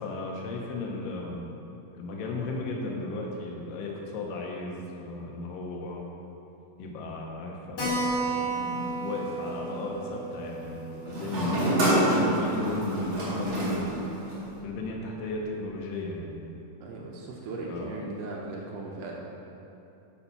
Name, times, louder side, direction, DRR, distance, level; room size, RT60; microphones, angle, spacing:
voice 1, 0.0-1.5 1.9-6.0 6.8-11.7 12.2-14.1 14.6-16.7 17.7-18.0, left 2 dB, 75° left, -1 dB, 2.4 m, -36 dB
Keyboard (musical), 7.8-12.8 13.1-13.2 13.5-13.6 13.8-13.9 14.5-14.9, right 2 dB, 40° left, 1.8 m, -34 dB
sound 1, 8.3-9.6 11.1-14.6, right 1 dB, 50° right, 3.0 m, -27 dB
voice 2, 16.8-19.1, right 2 dB, 75° right, -1 dB, 2.0 m, -37 dB
7.1 x 5.5 x 5.6 m, 2.9 s
omnidirectional pair, 4.2 m